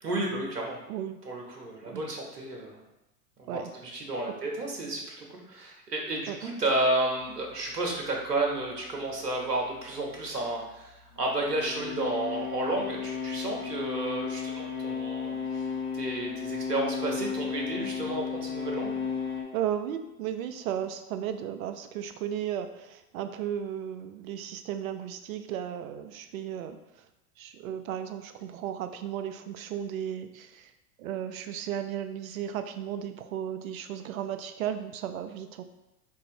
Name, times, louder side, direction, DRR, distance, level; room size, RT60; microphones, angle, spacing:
voice 1, 0.0-0.8 1.2-2.8 3.5-15.7 15.9-19.0, right 2 dB, 80° right, 0 dB, 0.9 m, -32 dB
voice 2, 0.9-1.2 1.8-2.0 3.5-3.7 6.3-6.4 19.5-26.8 27.4-30.7 31.0-35.6, right 9 dB, 65° right, 9 dB, 0.5 m, -35 dB
sound 1, 7.2-19.4, left 6 dB, 35° left, 1.1 m, -35 dB
4.6 x 2.5 x 2.7 m, 0.92 s
figure-of-eight pair, 90°, 47 cm